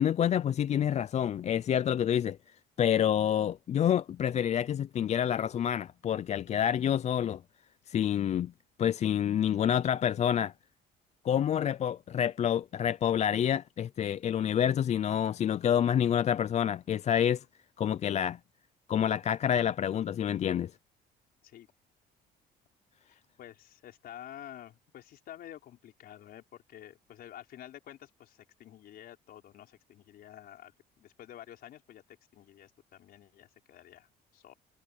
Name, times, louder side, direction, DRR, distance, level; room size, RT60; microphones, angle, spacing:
voice 1, 0.0-2.4 2.8-7.4 7.9-8.5 8.8-10.5 11.2-17.4 17.8-18.4 18.9-20.7, left 9 dB, 40° left, 0.5 m, -28 dB
voice 2, 23.0-34.5, left 11 dB, 65° left, 4.7 m, -50 dB
cardioid pair, 110°, 17 cm